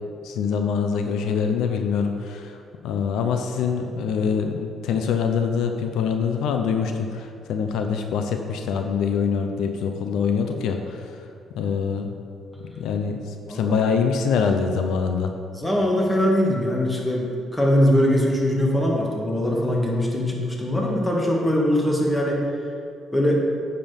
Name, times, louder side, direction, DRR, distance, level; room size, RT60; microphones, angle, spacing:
voice 1, 0.2-2.5 2.8-11.1 11.5-12.1 12.7-13.2 13.5-15.3, left 6 dB, 85° left, 5 dB, 0.7 m, -24 dB
voice 2, 15.5-17.3 17.5-22.4 23.1-23.4, equal, 10° left, -2 dB, 2.2 m, -21 dB
9.2 x 6.8 x 5.3 m, 2.4 s
cardioid pair, 90°, 0 cm